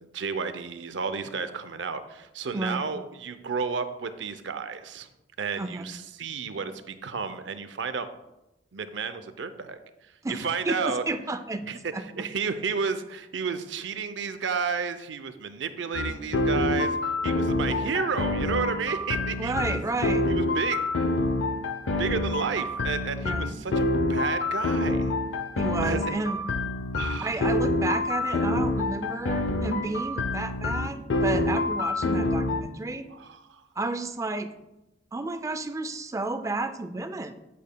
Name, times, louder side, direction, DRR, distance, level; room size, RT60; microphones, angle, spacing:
voice 1, 0.1-5.1 5.4-8.1 8.7-9.8 10.3-11.0 11.7-11.8 12.2-17.0 17.2-19.8 20.3-20.8 22.0-23.8 24.1-25.1 25.8-26.0 26.9-27.4 33.1-33.6, right 5 dB, 75° right, 11 dB, 0.5 m, -32 dB
voice 2, 5.6-5.9 10.2-12.0 19.4-20.2 23.2-23.5 25.6-26.4 27.2-33.0 33.8-34.5 35.1-37.3, right 2 dB, 15° right, 10 dB, 0.4 m, -31 dB
sound 1, 15.9-32.6, left 2 dB, 85° left, 0.6 m, -27 dB
8.5 x 8.2 x 2.2 m, 0.96 s
head